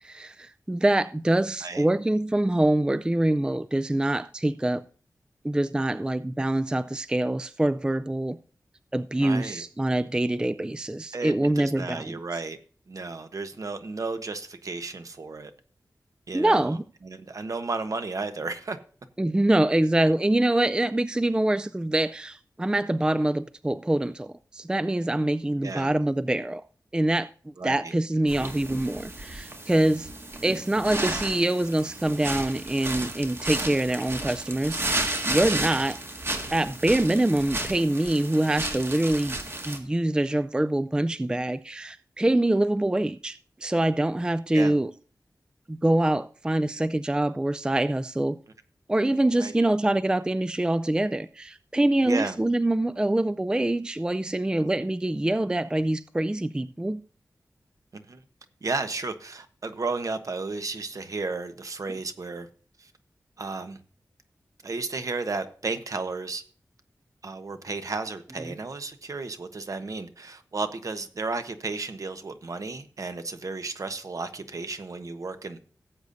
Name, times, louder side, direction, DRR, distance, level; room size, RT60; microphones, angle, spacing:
voice 1, 0.0-4.8 5.4-8.4 8.9-12.2 16.3-16.8 19.2-26.6 26.9-27.3 27.6-30.1 30.4-36.0 36.5-39.4 39.6-44.9 45.7-48.4 48.9-57.0 68.4-68.6, right 1 dB, 15° right, 0.3 m, -25 dB
voice 2, 9.2-9.6 11.1-12.6 12.9-15.5 16.3-16.7 17.0-18.8 25.6-25.9 27.6-27.7 35.5-35.8 44.5-44.7 49.4-49.5 52.0-52.4 57.9-58.2 58.6-62.5 62.8-62.9 63.4-63.8 64.6-66.4 67.2-75.6, right 3 dB, 55° right, 1.1 m, -33 dB
sound 1, 28.3-39.8, right 2 dB, 40° right, 1.8 m, -33 dB
17.5 x 8.1 x 2.6 m
wide cardioid pair, 90°, 7 cm